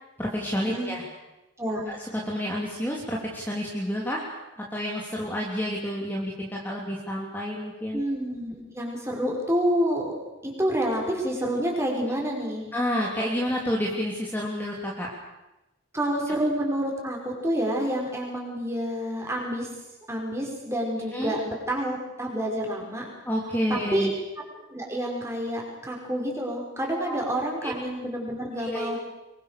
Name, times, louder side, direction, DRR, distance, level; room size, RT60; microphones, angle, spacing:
voice 1, 0.2-1.0 1.9-4.2 4.7-8.0 12.7-15.1 21.1-21.3 23.3-24.1 27.1-27.2 27.6-27.7 28.6-29.0, equal, 10° left, -3 dB, 3.2 m, -29 dB
voice 2, 7.9-10.2 10.4-12.6 15.9-19.7 20.1-23.1 23.7-24.1 24.7-29.0, equal, 15° right, 0 dB, 5.8 m, -28 dB
25.0 x 23.5 x 6.9 m, 0.99 s
head